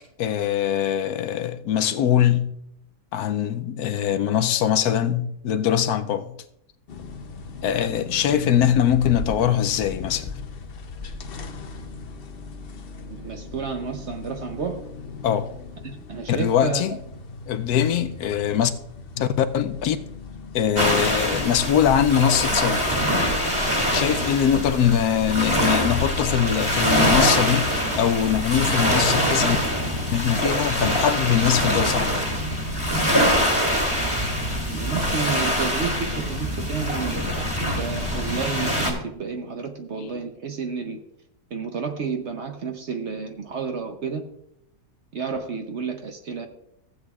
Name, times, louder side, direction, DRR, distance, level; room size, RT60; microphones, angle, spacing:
voice 1, 0.2-2.5 3.1-6.3 7.6-10.4 15.2-15.5 16.3-17.0 17.5-18.7 19.2-20.0 20.5-22.9 23.9-29.6 30.1-32.3, left 9 dB, 75° left, 1.1 m, -22 dB
sound 1, 6.9-22.7, left 4 dB, 55° left, 0.7 m, -38 dB
voice 2, 13.0-14.8 15.8-17.0 34.7-37.2 37.6-41.0 41.5-44.2 45.1-46.5, right 5 dB, 55° right, 0.9 m, -31 dB
sound 2, 20.8-38.9, equal, 20° right, 2.2 m, -24 dB
15.0 x 8.1 x 2.3 m
omnidirectional pair, 1.7 m